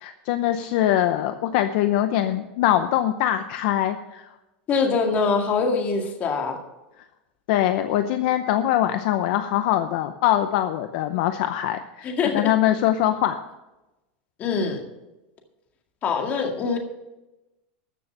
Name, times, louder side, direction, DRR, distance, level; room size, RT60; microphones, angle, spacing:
voice 1, 0.0-4.2 7.5-13.4, left 12 dB, 55° left, 8 dB, 0.7 m, -23 dB
voice 2, 4.7-6.6 12.0-12.5 14.4-14.8 16.0-16.8, left 5 dB, 30° left, 3 dB, 2.0 m, -23 dB
13.5 x 7.0 x 6.7 m, 1.0 s
supercardioid pair, 155°, 5 cm